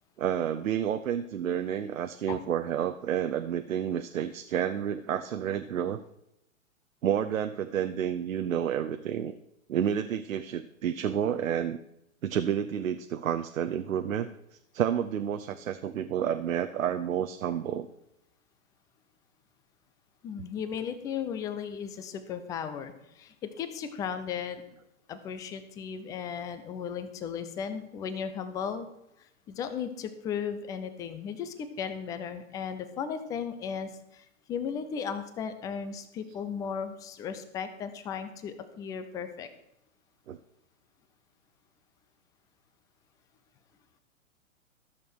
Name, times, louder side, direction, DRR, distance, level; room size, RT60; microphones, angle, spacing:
voice 1, 0.2-6.0 7.0-9.3 9.7-11.8 12.2-14.3 14.7-17.9 40.3-40.4, right 9 dB, 75° right, 8 dB, 0.8 m, -30 dB
voice 2, 20.2-24.6 25.1-28.9 29.2-39.5, left 7 dB, 10° left, 10 dB, 0.4 m, -36 dB
13.0 x 7.0 x 6.2 m, 0.81 s
hypercardioid pair, 120°, 41 cm